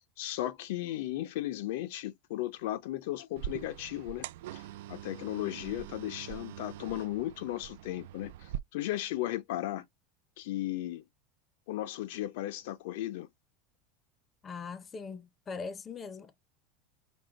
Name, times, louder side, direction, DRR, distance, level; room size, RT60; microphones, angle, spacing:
voice 1, 0.0-4.3 4.5-4.6 4.9-9.9 10.4-11.0 11.7-13.3, left 14 dB, 70° left, 0.5 m, -35 dB
sound 1, 3.4-8.6, right 13 dB, 75° right, 0.3 m, -43 dB
voice 2, 14.4-16.3, left 5 dB, 20° left, 0.5 m, -41 dB
5.3 x 2.1 x 3.7 m
supercardioid pair, 160°, 0 cm